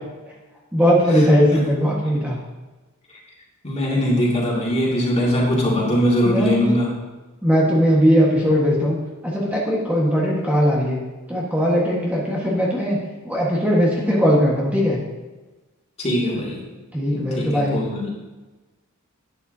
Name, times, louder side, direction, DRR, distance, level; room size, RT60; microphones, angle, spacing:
voice 1, 0.7-2.4 6.2-6.7 7.4-9.0 9.2-11.0 11.3-13.0 13.2-15.0 16.9-17.8, equal, 5° right, -5 dB, 1.5 m, -19 dB
voice 2, 3.6-6.9 16.0-16.6 17.1-18.1, equal, 30° left, -4 dB, 2.4 m, -21 dB
11.5 x 9.3 x 2.8 m, 1.2 s
head